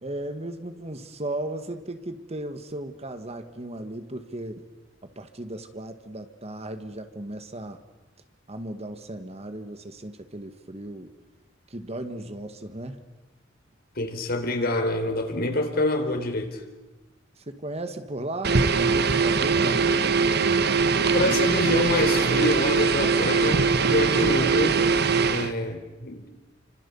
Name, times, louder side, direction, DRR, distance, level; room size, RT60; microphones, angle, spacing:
voice 1, 0.0-4.6 5.0-7.8 8.5-11.1 11.7-13.0 17.4-20.4, right 1 dB, 35° right, 1.8 m, -36 dB
voice 2, 14.0-16.6 21.1-23.6 23.9-24.8 25.3-26.3, left 2 dB, 55° left, 4.0 m, -26 dB
sound 1, 18.4-25.5, right 5 dB, 60° right, 1.4 m, -22 dB
29.5 x 26.0 x 7.2 m
head